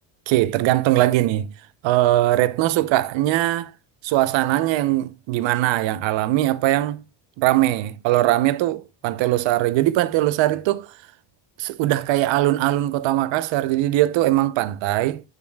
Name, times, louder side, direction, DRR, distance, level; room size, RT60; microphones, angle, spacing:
voice 1, 0.3-1.5 1.8-3.7 4.0-7.0 7.4-10.9 11.6-15.2, right 15 dB, 65° right, 0.8 m, -20 dB
8.5 x 7.1 x 2.3 m
cardioid pair, 130°, 50 cm